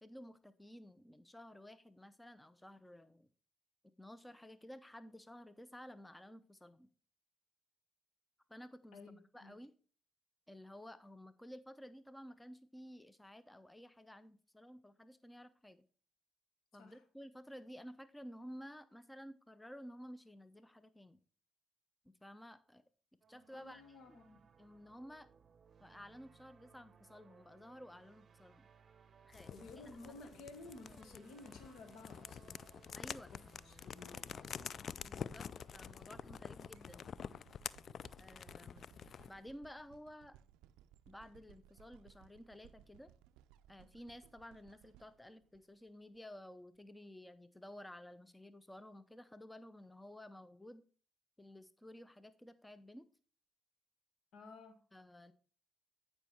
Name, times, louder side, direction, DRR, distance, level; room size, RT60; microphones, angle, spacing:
voice 1, 0.0-3.3 4.0-6.9 8.5-9.0 9.3-9.7 10.5-15.8 16.7-21.2 22.0-22.8 23.3-23.8 24.6-25.3 25.8-28.7 29.2-29.5 32.9-33.3 35.0-37.2 38.2-38.9 39.3-40.4 41.1-43.1 43.7-50.8 51.4-53.1 54.9-55.3, equal, 10° left, 13 dB, 0.6 m, -53 dB
voice 2, 8.9-9.5 16.7-17.0 23.5-24.4 29.5-32.6 33.3-34.4 54.3-54.8, left 3 dB, 75° left, 7 dB, 1.6 m, -54 dB
sound 1, 23.2-34.5, right 6 dB, 50° right, 0.7 m, -65 dB
sound 2, 29.3-39.4, left 7 dB, 60° left, 0.3 m, -48 dB
sound 3, 34.0-46.2 46.8-46.9, right 11 dB, 90° right, 0.3 m, -64 dB
9.1 x 5.5 x 4.4 m, 0.41 s
supercardioid pair, 60°, 0 cm